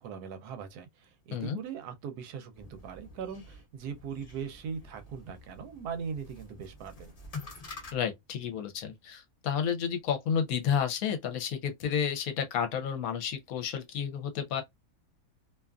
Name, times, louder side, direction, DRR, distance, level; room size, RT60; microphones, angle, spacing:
voice 1, 0.0-7.1, right 6 dB, 85° right, 1.2 m, -40 dB
sound 1, 2.5-8.0, left 3 dB, 40° left, 0.5 m, -47 dB
voice 2, 7.9-14.6, left 7 dB, 70° left, 1.0 m, -31 dB
2.7 x 2.4 x 2.3 m
omnidirectional pair, 1.6 m